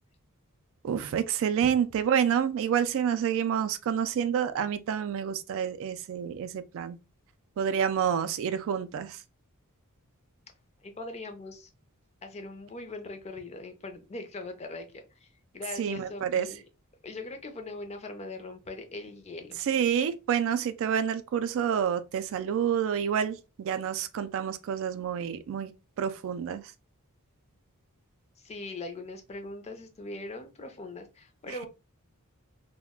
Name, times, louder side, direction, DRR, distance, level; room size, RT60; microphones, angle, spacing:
voice 1, 0.8-7.0 7.6-9.2 15.8-16.5 19.7-25.7 26.0-26.6, right 8 dB, 65° right, 0.3 m, -28 dB
voice 2, 10.8-11.7 12.2-16.7 17.0-19.6 28.4-31.7, left 2 dB, 30° left, 0.5 m, -41 dB
2.2 x 2.1 x 3.5 m
head